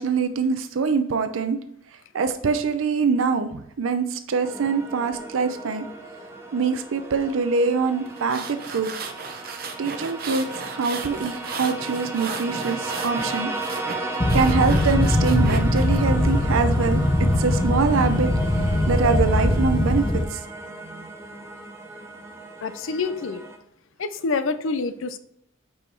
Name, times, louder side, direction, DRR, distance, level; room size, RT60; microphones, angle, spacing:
voice 1, 0.0-1.6 2.1-5.9 6.5-8.9 9.8-13.5 14.3-17.0 17.4-18.3 18.9-20.4 20.8-21.1, right 5 dB, 85° right, 8 dB, 0.5 m, -24 dB
sound 1, 4.4-23.6, right 2 dB, 15° right, 0.6 m, -35 dB
sound 2, 8.1-16.0, right 4 dB, 45° right, 0.7 m, -35 dB
sound 3, 14.2-20.2, left 1 dB, 25° left, 0.7 m, -21 dB
voice 2, 22.6-23.4 24.0-25.2, left 4 dB, 80° left, 12 dB, 0.5 m, -27 dB
5.3 x 4.5 x 4.5 m, 0.72 s
head